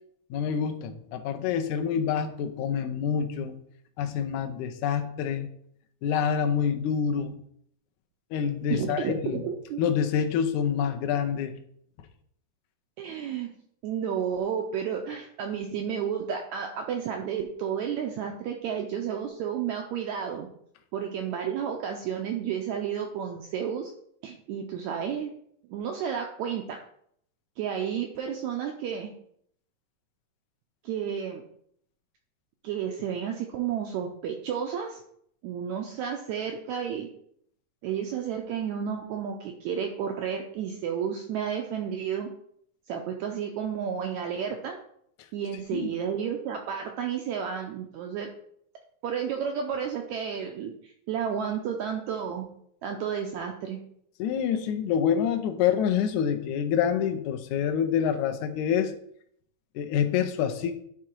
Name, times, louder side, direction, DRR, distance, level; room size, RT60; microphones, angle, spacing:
voice 1, 0.3-3.6 4.0-5.5 6.0-7.4 8.3-9.5 9.8-11.5 45.7-45.9 54.2-58.9 59.8-60.7, left 8 dB, 80° left, 6 dB, 1.8 m, -27 dB
voice 2, 8.7-9.1 9.4-9.8 13.0-13.5 13.8-20.5 20.9-23.9 24.2-25.3 25.7-26.8 27.6-29.1 30.8-31.4 32.6-35.0 35.4-37.1 37.8-42.3 42.9-44.8 45.3-48.3 49.0-52.5 52.8-53.8, right 8 dB, 85° right, 3 dB, 1.6 m, -31 dB
11.0 x 3.7 x 4.5 m, 0.68 s
omnidirectional pair, 4.0 m